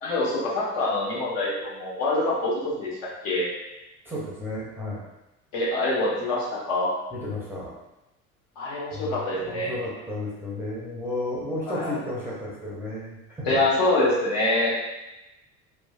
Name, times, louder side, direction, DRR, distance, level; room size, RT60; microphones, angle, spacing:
voice 1, 0.0-3.0 3.2-3.5 5.5-6.9 8.6-9.7 11.7-12.0 13.5-14.7, left 2 dB, 60° left, -6 dB, 1.1 m, -25 dB
voice 2, 4.0-5.0 7.1-7.7 8.9-13.5, left 2 dB, 5° right, -7 dB, 0.6 m, -33 dB
3.0 x 2.2 x 2.2 m, 0.96 s
figure-of-eight pair, 65°, 43 cm